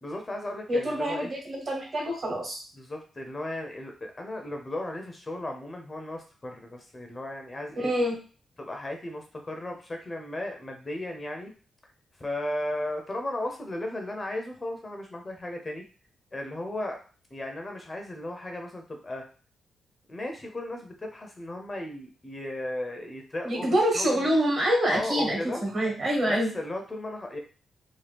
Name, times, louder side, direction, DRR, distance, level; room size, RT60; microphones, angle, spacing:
voice 1, 0.0-1.3 2.8-7.9 8.6-11.5 12.2-15.8 16.3-17.0 17.3-19.2 20.1-24.3 24.9-25.6 26.3-27.4, left 1 dB, 25° left, 3 dB, 0.6 m, -35 dB
voice 2, 0.7-2.6 7.8-8.2 23.4-26.5, equal, 45° right, 0 dB, 1.3 m, -26 dB
2.9 x 2.1 x 3.3 m, 0.37 s
cardioid pair, 115°, 0 cm